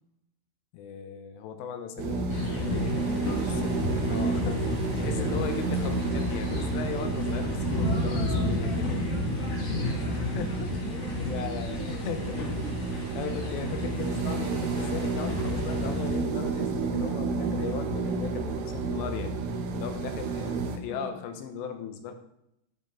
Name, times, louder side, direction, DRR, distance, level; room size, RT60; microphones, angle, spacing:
voice 1, 0.7-3.0 3.6-3.7 4.1-4.6 5.0-9.0 9.9-10.7 11.0-12.6 13.1-19.3 19.7-22.1, left 7 dB, 80° left, 7 dB, 3.0 m, -37 dB
sound 1, 2.0-20.8, right 4 dB, 75° right, 2.3 m, -31 dB
sound 2, 2.3-16.3, left 2 dB, 45° left, 2.3 m, -32 dB
voice 2, 2.9-4.4 4.8-5.4 7.8-11.5 11.8-12.2 12.6-13.0 20.9-21.2, left 1 dB, 25° right, -6 dB, 1.5 m, -40 dB
12.0 x 5.3 x 3.7 m, 0.80 s
omnidirectional pair, 5.1 m